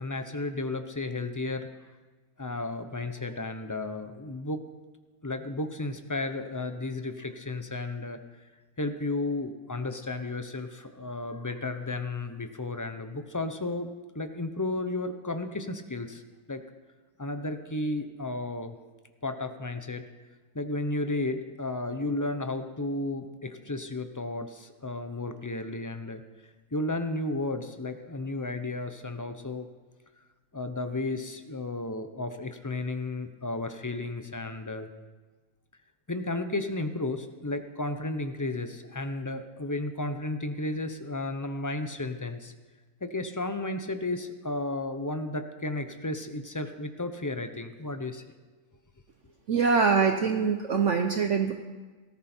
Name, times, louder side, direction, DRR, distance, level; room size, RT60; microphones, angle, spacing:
voice 1, 0.0-1.7 2.4-4.6 5.2-8.2 8.8-13.9 14.1-16.2 16.5-16.6 17.2-18.8 19.2-20.0 20.5-26.2 26.7-29.7 30.5-34.9 36.1-42.5 43.0-48.2, left 2 dB, 20° left, 8 dB, 0.5 m, -33 dB
voice 2, 49.5-51.5, right 5 dB, 55° right, 5 dB, 1.1 m, -24 dB
18.5 x 14.5 x 4.4 m, 1.3 s
omnidirectional pair, 1.6 m